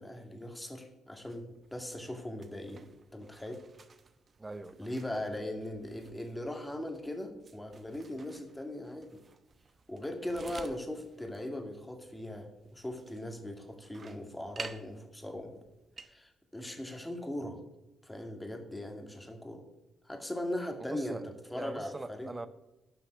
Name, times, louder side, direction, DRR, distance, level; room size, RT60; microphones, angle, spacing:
voice 1, 0.0-2.9 3.1-3.6 4.8-9.2 9.9-15.6 16.0-17.6 18.0-19.7 20.0-21.2 21.5-22.3, left 1 dB, 10° left, 2.1 m, -39 dB
sound 1, 1.3-16.1, right 4 dB, 40° right, 0.9 m, -53 dB
voice 2, 4.4-4.9 20.8-22.5, right 2 dB, 20° right, 0.7 m, -42 dB
10.0 x 5.9 x 8.4 m
cardioid pair, 90°, 0 cm